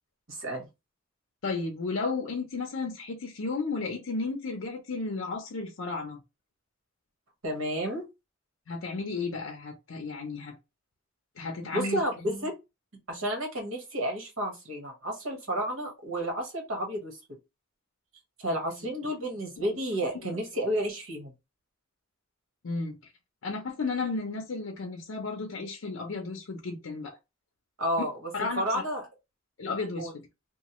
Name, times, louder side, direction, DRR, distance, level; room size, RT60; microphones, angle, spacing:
voice 1, 0.3-0.7 7.4-8.0 11.7-12.5 13.1-17.2 18.4-21.3 27.8-29.0 30.0-30.1, equal, 80° right, 1.2 m, -31 dB
voice 2, 1.4-6.2 8.7-10.6 11.4-12.0 19.7-19.8 20.2-20.3 22.6-23.0 23.4-27.2 28.3-28.8 29.6-30.1, left 3 dB, 70° left, 0.6 m, -33 dB
3.0 x 2.2 x 2.9 m
head